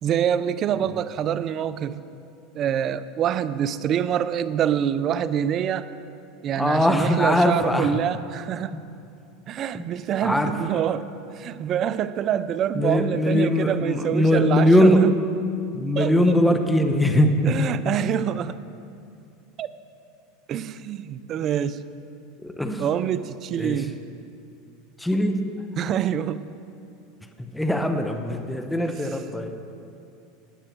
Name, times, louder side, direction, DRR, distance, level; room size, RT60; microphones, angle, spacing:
voice 1, 0.0-2.0 2.5-5.9 6.4-8.7 9.5-11.1 11.4-15.1 16.0-16.4 17.5-18.6 19.6-19.7 20.5-21.8 22.8-24.0 25.8-26.4 28.9-29.0, right 9 dB, 40° right, 15 dB, 0.5 m, -26 dB
voice 2, 6.5-8.0 8.7-8.8 9.7-9.9 10.2-10.5 12.7-15.0 15.7-17.6 22.4-22.9 23.6-23.9 25.0-25.5 27.5-29.6, left 1 dB, 5° left, 6 dB, 1.0 m, -21 dB
15.0 x 9.7 x 4.6 m, 2.6 s
supercardioid pair, 115°, 0 cm